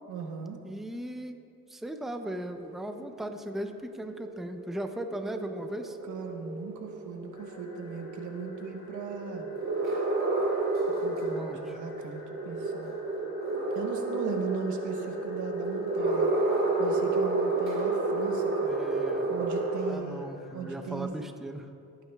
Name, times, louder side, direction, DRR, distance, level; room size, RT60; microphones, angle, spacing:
voice 1, 0.1-0.6 6.0-9.4 11.0-13.0 13.7-16.3 16.8-18.7 19.3-21.1, right 6 dB, 75° right, 4 dB, 1.2 m, -38 dB
voice 2, 0.6-1.4 1.7-6.0 11.3-11.8 18.7-19.3 19.9-21.7, right 1 dB, ahead, 6 dB, 0.6 m, -38 dB
sound 1, 2.6-19.9, right 2 dB, 45° right, 2.9 m, -31 dB
sound 2, 7.3-21.1, left 3 dB, 60° left, 2.0 m, -51 dB
19.5 x 8.9 x 2.3 m, 2.4 s
cardioid pair, 90°, 30 cm